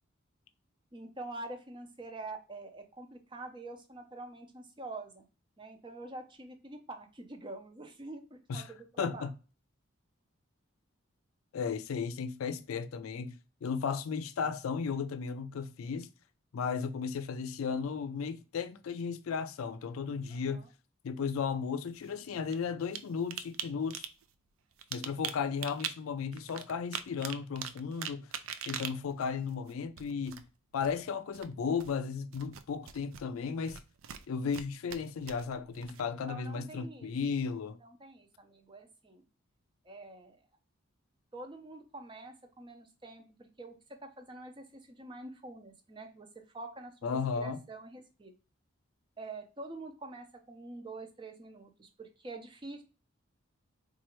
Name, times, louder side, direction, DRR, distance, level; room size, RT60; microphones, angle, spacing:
voice 1, 0.9-5.3 5.6-9.3 20.3-20.7 36.3-37.1 37.8-39.2 39.8-40.4 41.3-43.7 44.0-48.3 49.2-52.8, right 2 dB, 25° right, 0.5 m, -46 dB
voice 2, 9.0-9.3 11.5-13.4 13.6-16.1 16.5-20.6 21.0-24.1 24.9-28.3 28.7-30.4 30.7-33.8 34.3-37.8 47.0-47.6, left 6 dB, 90° left, 0.4 m, -35 dB
sound 1, 21.9-23.0 23.3-23.6 23.9-24.2 24.7-25.9 26.3-30.5 30.8-31.1 31.3-32.0 32.3-33.2 33.7-34.6 34.9-36.3, right 9 dB, 80° right, 0.4 m, -41 dB
4.2 x 2.4 x 3.0 m
head